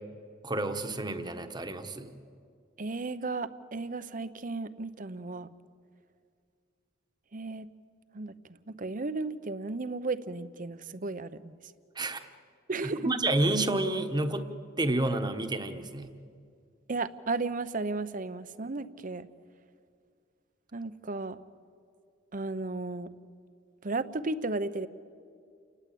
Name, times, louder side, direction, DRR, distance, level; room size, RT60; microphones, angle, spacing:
voice 1, 0.4-2.2 11.9-12.2 13.0-14.5 14.8-16.1, right 2 dB, 20° right, 7 dB, 1.3 m, -29 dB
voice 2, 2.8-5.5 7.3-7.7 8.1-8.3 8.7-11.5 12.7-13.1 16.9-19.3 20.7-21.4 22.3-23.1 23.8-24.9, right 3 dB, 45° right, 13 dB, 0.8 m, -34 dB
29.5 x 19.0 x 8.6 m, 2.3 s
head